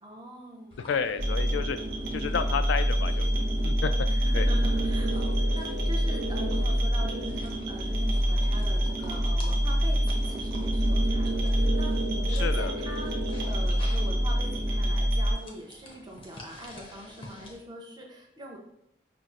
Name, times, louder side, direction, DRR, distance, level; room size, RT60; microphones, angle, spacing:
voice 1, 0.0-0.9 4.1-13.1 13.5-18.6, equal, 25° right, 0 dB, 0.6 m, -42 dB
sound 1, 0.7-17.6, left 1 dB, 30° left, 0.6 m, -49 dB
voice 2, 0.9-1.8 2.1-3.9 4.3-4.5 12.3-12.7, left 6 dB, 90° left, 11 dB, 0.3 m, -31 dB
sound 2, 1.2-15.3, equal, 60° right, 0.7 m, -26 dB
5.8 x 2.0 x 2.4 m, 0.80 s
head